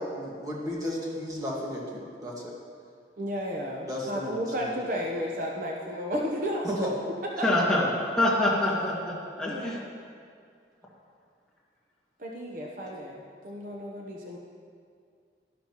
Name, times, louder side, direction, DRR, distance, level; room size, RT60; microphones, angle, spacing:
voice 1, 0.0-2.5 3.9-4.8 6.6-6.9, equal, 20° right, -4 dB, 1.6 m, -34 dB
voice 2, 3.2-6.7 7.4-7.6 9.4-9.9 12.2-14.4, equal, 50° right, -1 dB, 0.9 m, -33 dB
voice 3, 7.4-7.8 8.2-9.8, left 1 dB, 5° left, -7 dB, 2.0 m, -25 dB
12.5 x 11.5 x 3.0 m, 2.2 s
head